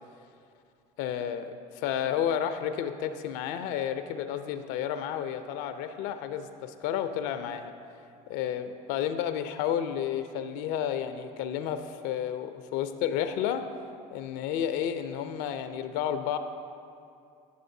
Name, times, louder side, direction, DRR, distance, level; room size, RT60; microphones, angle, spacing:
voice 1, 1.0-7.7 8.3-13.7 14.1-16.4, left 9 dB, 75° left, 9 dB, 0.4 m, -31 dB
9.9 x 6.3 x 2.6 m, 2.5 s
supercardioid pair, 80°, 18 cm